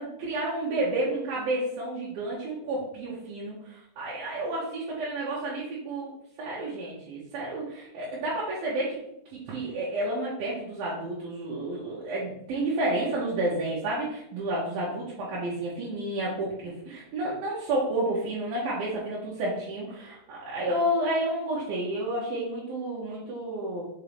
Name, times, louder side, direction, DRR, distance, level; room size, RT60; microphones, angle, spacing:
voice 1, 0.0-6.1 6.4-9.0 9.3-23.8, right 1 dB, 65° right, -7 dB, 2.9 m, -30 dB
6.1 x 5.6 x 3.4 m, 0.76 s
omnidirectional pair, 5.1 m